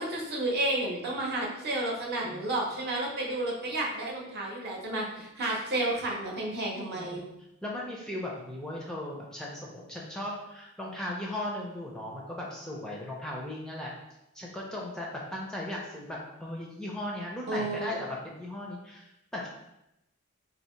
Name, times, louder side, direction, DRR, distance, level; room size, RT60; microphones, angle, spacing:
voice 1, 0.0-7.2 17.5-17.9, right 1 dB, 50° right, -2 dB, 0.8 m, -31 dB
voice 2, 2.2-2.5 6.9-7.3 7.6-13.9 14.3-19.5, left 1 dB, 5° left, -3 dB, 0.4 m, -37 dB
2.8 x 2.7 x 4.3 m, 0.87 s
head